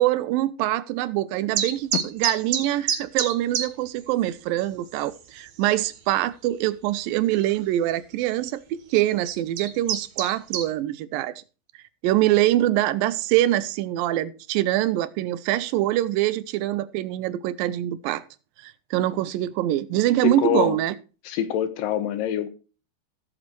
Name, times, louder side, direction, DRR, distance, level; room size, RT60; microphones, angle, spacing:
voice 1, 0.0-11.3 12.0-18.2 18.6-21.0, right 14 dB, 80° right, 2.1 m, -24 dB
sound 1, 1.6-3.7 4.0-4.1 4.6-4.7 4.9-5.4 5.9-6.0 7.4-7.5 8.3-8.5 9.1-10.7, right 8 dB, 65° right, 2.9 m, -26 dB
voice 2, 20.2-20.8 21.2-22.5, left 10 dB, 70° left, 2.5 m, -25 dB
16.5 x 7.7 x 3.1 m
omnidirectional pair, 4.6 m